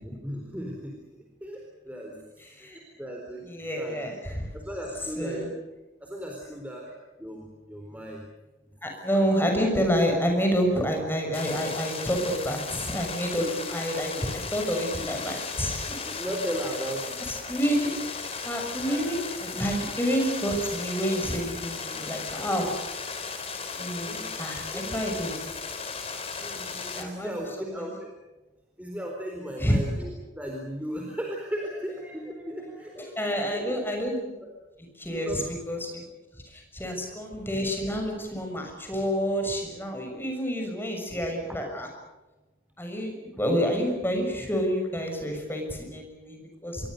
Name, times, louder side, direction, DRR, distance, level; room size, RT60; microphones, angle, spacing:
voice 1, 0.0-1.0 1.4-2.1 2.6-5.5 6.0-6.9 7.2-8.2 9.1-9.3 13.4-13.8 14.2-14.3 16.2-17.2 18.8-19.1 24.0-24.3 24.7-25.0 26.4-28.1 28.8-33.1 33.5-33.7 35.3-35.4, equal, 10° right, 0 dB, 4.1 m, -36 dB
voice 2, 2.4-2.8 3.4-4.5 5.2-5.5 8.8-13.5 13.7-16.0 17.5-17.9 18.4-22.7 23.8-25.4 26.9-27.9 29.6-29.9 32.6-32.7 32.9-34.3 35.0-36.0 36.5-41.9 42.8-46.9, equal, 10° left, 3 dB, 6.6 m, -28 dB
sound 1, 11.3-27.0, left 5 dB, 30° left, 3.9 m, -36 dB
27.0 x 23.0 x 6.7 m, 1.1 s
head